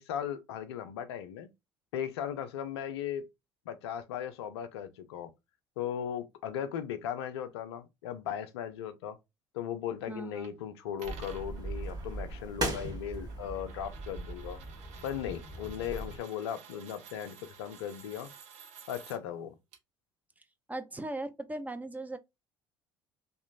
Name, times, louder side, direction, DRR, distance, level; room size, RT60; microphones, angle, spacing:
voice 1, 0.0-1.5 1.9-3.3 3.7-5.3 5.8-9.2 9.5-14.6 15.0-18.3 18.9-19.6, left 9 dB, 70° left, 0.5 m, -37 dB
voice 2, 10.1-10.5 20.7-22.2, right 2 dB, 10° right, 0.5 m, -38 dB
sound 1, 10.4-10.5 11.0-19.2 19.7-19.8, right 7 dB, 55° right, 0.6 m, -53 dB
sound 2, 11.0-16.2, right 1 dB, 30° right, 1.4 m, -38 dB
2.9 x 2.4 x 2.3 m
figure-of-eight pair, 60°, 14 cm